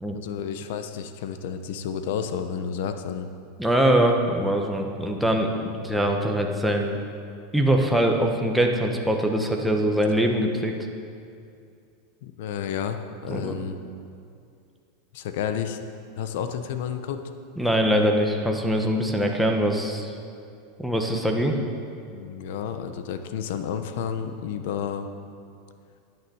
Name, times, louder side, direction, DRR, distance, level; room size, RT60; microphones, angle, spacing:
voice 1, 0.1-3.3 12.2-13.8 15.1-15.8 16.2-17.2 22.1-25.1, left 8 dB, 70° left, 8 dB, 0.9 m, -31 dB
voice 2, 3.6-7.0 7.5-10.7 13.3-13.6 17.6-20.1 20.8-21.6, right 1 dB, ahead, 1 dB, 1.2 m, -23 dB
11.0 x 9.3 x 7.0 m, 2.5 s
supercardioid pair, 135°, 0 cm